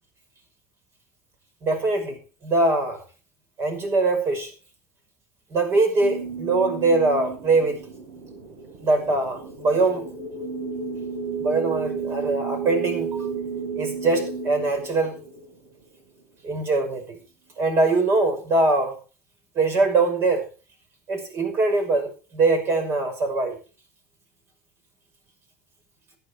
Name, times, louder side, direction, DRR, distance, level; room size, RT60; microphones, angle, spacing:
voice 1, 1.6-3.0 3.6-4.5 5.5-7.8 8.8-10.0 11.4-13.1 13.8-15.2 16.4-17.2 17.6-18.9 19.6-20.4 21.1-23.6, right 3 dB, 40° right, 7 dB, 5.8 m, -22 dB
sound 1, 6.0-15.8, right 5 dB, 70° right, 4.9 m, -32 dB
15.0 x 10.5 x 4.6 m, 0.35 s
supercardioid pair, 115°, 6 cm